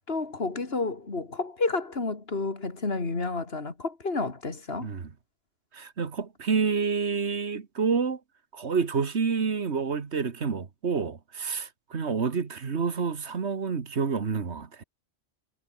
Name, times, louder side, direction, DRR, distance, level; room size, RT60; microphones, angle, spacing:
voice 1, 0.1-4.9, left 3 dB, 65° left, 3.1 m, -30 dB
voice 2, 4.8-5.1 5.7-8.2 8.5-14.8, right 5 dB, 85° right, 1.9 m, -28 dB
omnidirectional pair, 1.1 m